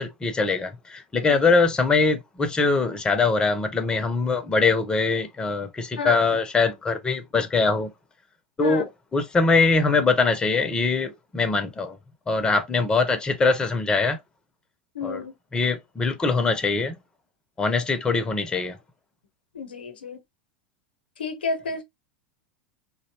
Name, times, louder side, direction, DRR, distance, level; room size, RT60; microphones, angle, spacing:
voice 1, 0.0-7.9 8.6-12.0 12.3-14.2 15.0-15.2 15.5-17.0 17.6-18.8, left 4 dB, 15° left, 0.4 m, -22 dB
voice 2, 6.0-6.3 8.6-8.8 14.9-15.3 19.5-20.2 21.2-21.8, left 4 dB, 75° left, 0.6 m, -31 dB
2.6 x 2.0 x 2.7 m
figure-of-eight pair, 80°, 5 cm